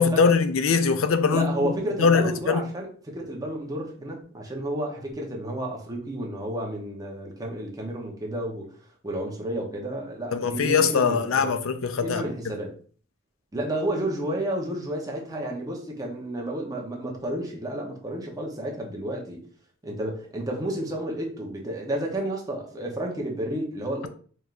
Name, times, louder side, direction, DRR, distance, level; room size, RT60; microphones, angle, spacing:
voice 1, 0.0-1.7 2.0-2.6 10.3-12.2, left 5 dB, 70° left, 0.5 m, -22 dB
voice 2, 1.3-8.7 9.0-11.5 12.0-12.7 13.5-19.4 19.8-24.1, right 1 dB, 15° right, 0.9 m, -31 dB
4.3 x 3.5 x 2.5 m
head